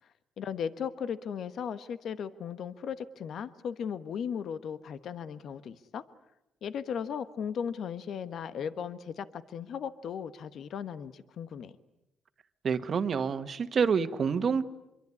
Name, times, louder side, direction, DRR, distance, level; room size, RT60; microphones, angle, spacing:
voice 1, 0.4-6.0 6.6-11.7, left 7 dB, 65° left, 12 dB, 1.2 m, -36 dB
voice 2, 12.6-14.6, right 6 dB, 50° right, 10 dB, 1.5 m, -27 dB
26.0 x 23.0 x 9.8 m, 0.90 s
cardioid pair, 90°, 0 cm